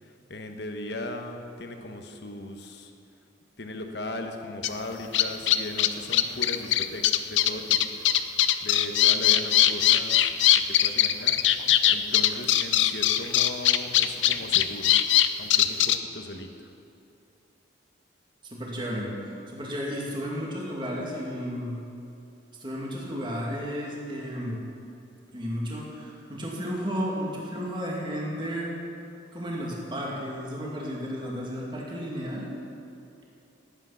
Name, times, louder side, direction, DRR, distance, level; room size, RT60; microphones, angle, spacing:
voice 1, 0.0-2.9 3.6-7.8 8.6-10.2 10.5-11.4 11.9-14.9 15.4-16.7, left 1 dB, 60° left, 5 dB, 1.3 m, -38 dB
sound 1, 4.6-4.7 5.1-16.0, left 12 dB, 75° left, 0.6 m, -20 dB
voice 2, 18.5-19.1 19.5-21.8 22.6-24.6 25.3-28.7 29.3-32.5, equal, 25° right, -3 dB, 2.4 m, -33 dB
18.5 x 8.9 x 5.8 m, 2.8 s
head